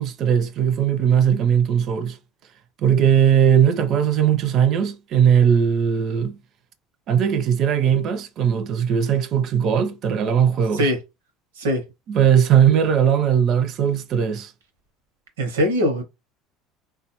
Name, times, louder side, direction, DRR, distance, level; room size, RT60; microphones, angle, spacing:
voice 1, 0.0-2.2 2.8-6.4 7.1-10.9 12.1-14.5, right 8 dB, 55° right, 0.5 m, -19 dB
voice 2, 15.4-16.0, equal, 90° right, 0.8 m, -21 dB
3.5 x 2.3 x 2.9 m
hypercardioid pair, 80°, 0 cm